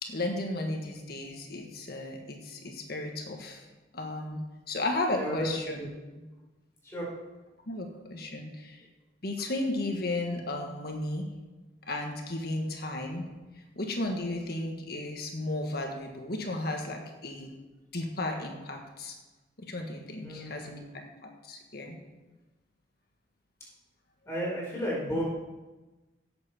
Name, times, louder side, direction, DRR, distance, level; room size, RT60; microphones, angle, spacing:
voice 1, 0.0-3.7 3.9-4.4 4.7-5.9 7.7-8.8 9.2-11.3 11.9-13.2 13.7-17.5 17.9-19.1 19.6-22.0, left 2 dB, 55° left, 2 dB, 1.7 m, -34 dB
voice 2, 5.1-5.5 5.8-5.9 6.8-7.1 12.6-12.7 20.2-21.0 24.2-25.2, equal, 15° left, -6 dB, 5.1 m, -34 dB
17.5 x 7.9 x 4.5 m, 1.2 s
head